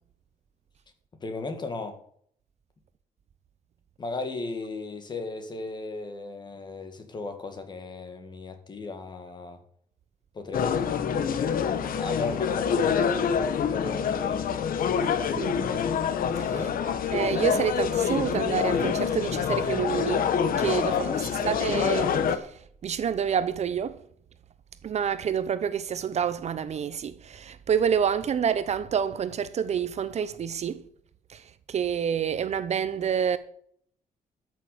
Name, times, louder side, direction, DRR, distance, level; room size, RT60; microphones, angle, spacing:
voice 1, 1.2-2.0 4.0-9.6 10.3-11.0 11.8-13.3 13.7-14.5 16.5-16.7 20.9-21.6, left 3 dB, 30° left, 1.8 m, -36 dB
sound 1, 10.5-22.4, left 7 dB, 70° left, 1.1 m, -26 dB
voice 2, 17.1-20.3 20.6-21.0 21.5-22.5 22.8-24.0 24.8-30.8 31.3-31.4 31.7-33.4, right 8 dB, 45° right, 0.7 m, -28 dB
13.0 x 6.5 x 6.6 m
wide cardioid pair, 170°, 15 cm